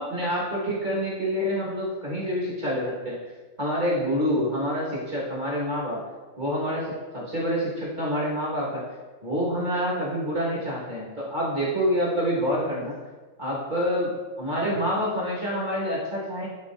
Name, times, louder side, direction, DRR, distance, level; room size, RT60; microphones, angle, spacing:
voice 1, 0.0-3.2 3.6-6.0 6.4-8.9 9.2-12.9 13.4-16.5, equal, 25° right, -6 dB, 1.6 m, -27 dB
9.5 x 4.9 x 2.6 m, 1.3 s
omnidirectional pair, 2.2 m